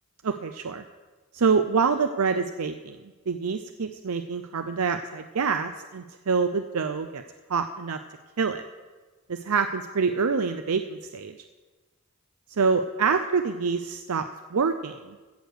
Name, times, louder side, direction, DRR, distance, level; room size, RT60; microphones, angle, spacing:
voice 1, 0.2-0.8 1.3-3.0 3.3-7.2 7.5-8.0 8.4-8.6 9.3-11.3 12.6-15.2, right 5 dB, 80° right, 8 dB, 0.6 m, -26 dB
16.0 x 6.8 x 6.4 m, 1.3 s
head